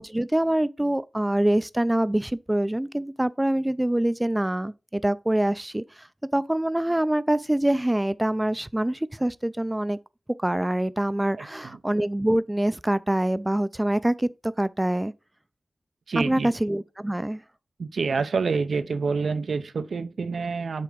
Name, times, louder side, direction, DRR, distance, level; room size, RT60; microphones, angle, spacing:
voice 1, 0.0-6.1 6.3-10.0 10.4-15.1 16.1-17.4, right 1 dB, 15° right, 0.4 m, -25 dB
voice 2, 16.1-16.5 17.8-20.8, right 4 dB, 80° right, 0.6 m, -27 dB
7.7 x 3.4 x 5.0 m
wide cardioid pair, 65°, 0 cm